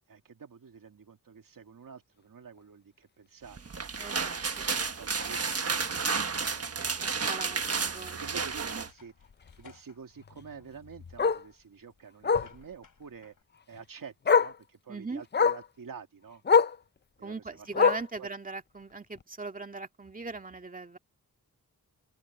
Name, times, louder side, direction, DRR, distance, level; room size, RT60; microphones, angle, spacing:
voice 1, 0.1-3.9 4.7-6.8 8.1-9.1 9.6-13.4 13.7-16.4 17.2-17.8 18.2-18.3, right 6 dB, 65° right, 2.4 m, -48 dB
sound 1, 3.6-8.9, right 5 dB, 40° right, 1.5 m, -31 dB
voice 2, 4.0-4.9 7.0-8.2 14.9-15.2 17.2-21.0, right 3 dB, 20° right, 2.1 m, -40 dB
Bark, 4.7-4.9 5.3-5.4 5.8-5.9 6.2-6.3 7.7-7.8 10.3-10.4 11.2-11.5 12.2-12.5 13.7-13.8 14.2-14.6 15.3-15.7 16.4-16.8 17.7-18.2 19.2-19.3, left 6 dB, 30° left, 0.5 m, -24 dB
sound 2, 8.5-13.4, left 5 dB, 60° left, 3.7 m, -55 dB
open air
wide cardioid pair, 130°, 36 cm